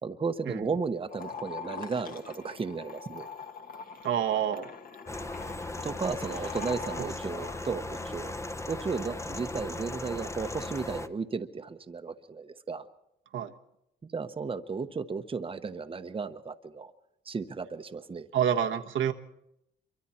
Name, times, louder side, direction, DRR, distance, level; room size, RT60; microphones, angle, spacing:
voice 1, 0.0-3.3 5.8-8.3 8.7-12.9 14.1-16.9 17.3-18.3, right 5 dB, 25° right, 7 dB, 1.0 m, -34 dB
sound 1, 1.1-7.6, left 5 dB, 45° left, 1.6 m, -43 dB
voice 2, 4.0-4.7 7.0-7.1 13.3-13.5 18.3-19.1, right 9 dB, 75° right, 5 dB, 1.3 m, -28 dB
sound 2, 5.1-11.1, left 2 dB, 15° left, 1.0 m, -37 dB
26.5 x 24.0 x 4.4 m, 0.82 s
cardioid pair, 90°, 20 cm